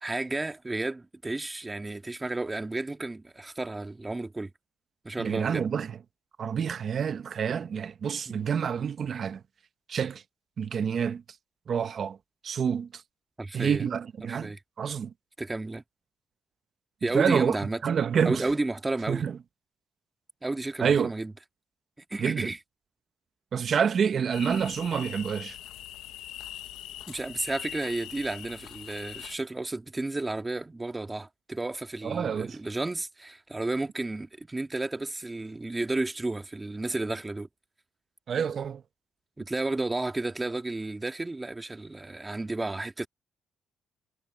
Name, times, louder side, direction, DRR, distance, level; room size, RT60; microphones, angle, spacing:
voice 1, 0.0-4.5 5.0-5.6 8.3-8.5 13.4-13.9 14.3-14.6 15.4-15.8 17.0-17.8 18.2-19.3 20.4-21.3 22.1-22.6 27.1-37.5 39.4-43.1, right 2 dB, 15° right, 1.9 m, -32 dB
voice 2, 5.2-6.0 6.4-9.4 9.9-10.2 10.6-11.2 11.7-12.2 12.4-13.0 13.5-15.1 17.1-17.6 17.8-18.5 19.1-19.4 20.8-21.1 22.2-22.5 23.5-25.6 32.0-32.6 38.3-38.8, right 7 dB, 50° right, 0.8 m, -28 dB
sound 1, 24.3-29.4, left 13 dB, 85° left, 1.1 m, -42 dB
cardioid pair, 90°, 0 cm